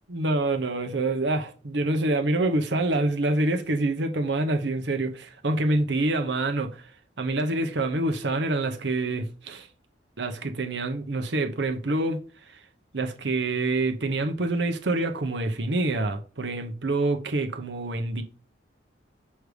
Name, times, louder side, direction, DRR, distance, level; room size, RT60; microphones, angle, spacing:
voice 1, 0.1-6.7 7.2-9.7 10.2-12.2 12.9-18.2, right 2 dB, 70° right, 0.9 m, -26 dB
6.4 x 3.3 x 4.9 m
head